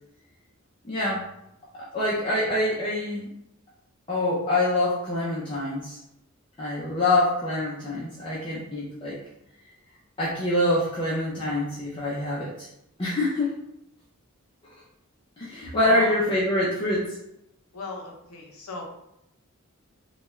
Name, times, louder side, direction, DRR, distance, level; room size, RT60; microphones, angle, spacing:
voice 1, 0.8-1.2 1.7-3.3 4.1-6.0 6.6-9.2 10.2-12.7 13.0-13.5 15.4-17.2, left 1 dB, 25° left, -8 dB, 0.6 m, -25 dB
voice 2, 15.8-16.2 17.7-18.8, left 2 dB, 85° left, 1 dB, 0.7 m, -37 dB
3.3 x 2.3 x 3.1 m, 0.84 s
head